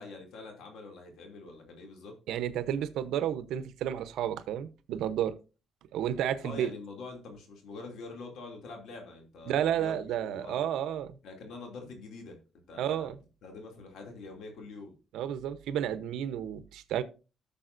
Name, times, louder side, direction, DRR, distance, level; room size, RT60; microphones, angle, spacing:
voice 1, 0.0-2.2 6.4-10.6 11.2-12.4 12.7-13.1 13.4-14.9, left 3 dB, 75° left, 2.6 m, -45 dB
voice 2, 2.3-5.3 5.9-6.7 9.5-11.1 12.8-13.2 15.1-17.0, right 10 dB, 85° right, 0.8 m, -31 dB
15.5 x 6.9 x 2.6 m
cardioid pair, 125°, 0 cm